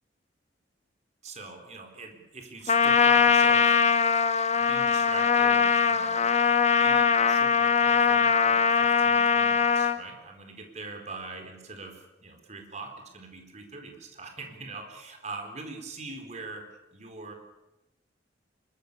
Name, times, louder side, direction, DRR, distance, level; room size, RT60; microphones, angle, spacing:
voice 1, 1.2-3.7 4.6-16.7 16.9-17.3, right 3 dB, 40° right, 4 dB, 4.2 m, -42 dB
Trumpet, 2.7-10.0, left 6 dB, 35° left, 1.0 m, -22 dB
25.0 x 22.0 x 6.9 m, 0.96 s
head